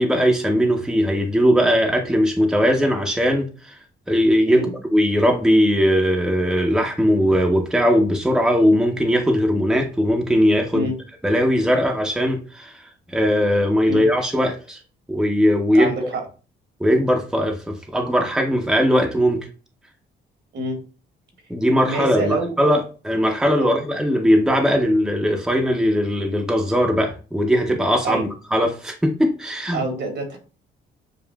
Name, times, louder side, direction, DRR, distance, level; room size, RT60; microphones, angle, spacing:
voice 1, 0.0-3.8 4.1-10.9 11.2-14.8 15.1-16.1 16.8-19.4 21.5-29.8, equal, 5° right, 2 dB, 0.8 m, -19 dB
voice 2, 15.7-16.2 20.5-20.8 21.8-22.5 23.6-23.7 28.0-28.3 29.7-30.4, right 2 dB, 60° right, 3 dB, 1.4 m, -26 dB
7.0 x 2.5 x 2.2 m, 0.35 s
cardioid pair, 90°, 20 cm